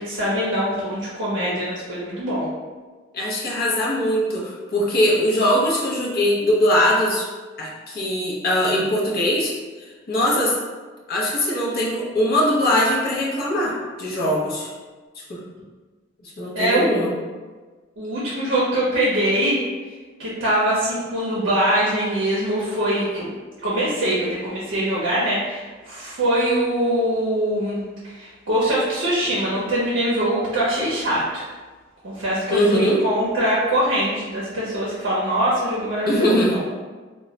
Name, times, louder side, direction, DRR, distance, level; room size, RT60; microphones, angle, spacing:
voice 1, 0.0-2.5 16.5-17.0 18.0-19.6 20.2-23.3 23.6-31.5 32.0-36.6, right 1 dB, 70° right, -7 dB, 0.6 m, -23 dB
voice 2, 3.1-7.3 7.6-9.5 10.1-10.6 11.1-14.7 15.3-15.4 16.2-17.1 32.5-33.0 36.1-36.5, equal, 50° left, -4 dB, 0.6 m, -21 dB
2.2 x 2.1 x 3.7 m, 1.4 s
head